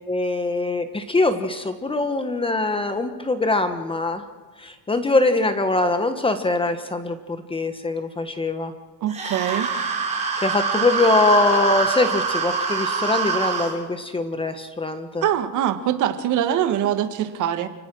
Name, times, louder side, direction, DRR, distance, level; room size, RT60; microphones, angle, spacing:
voice 1, 0.1-4.2 4.6-8.7 10.4-15.2, left 2 dB, 15° left, 9 dB, 1.3 m, -23 dB
voice 2, 9.0-9.7 15.2-17.7, right 10 dB, 50° right, 9 dB, 1.7 m, -23 dB
sound 1, 9.1-13.7, right 5 dB, 15° right, 5.2 m, -24 dB
29.0 x 17.5 x 6.2 m, 1.4 s
cardioid pair, 125°, 38 cm